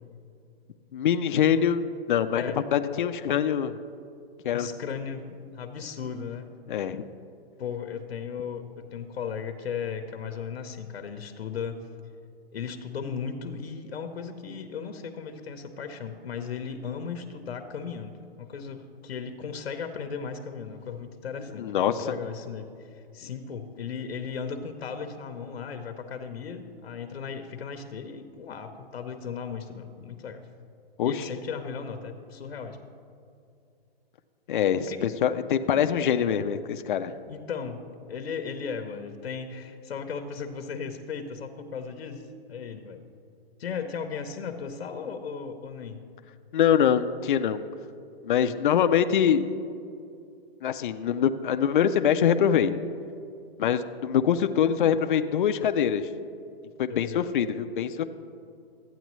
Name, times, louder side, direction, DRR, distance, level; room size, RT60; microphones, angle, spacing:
voice 1, 0.9-2.4 2.7-3.8 4.4-4.7 6.7-7.0 21.6-22.1 31.0-31.2 34.5-37.2 46.5-47.6 48.2-49.5 50.6-52.8 53.6-56.1 56.8-58.0, left 8 dB, 55° left, 9 dB, 0.4 m, -24 dB
voice 2, 4.5-6.5 7.6-11.8 12.5-22.7 22.9-30.5 31.0-32.8 34.7-35.0 37.3-37.8 38.1-42.2 42.5-43.0 43.6-46.0 56.9-57.3, left 6 dB, 85° left, 7 dB, 0.9 m, -36 dB
13.5 x 9.0 x 3.1 m, 2.4 s
hypercardioid pair, 165°, 31 cm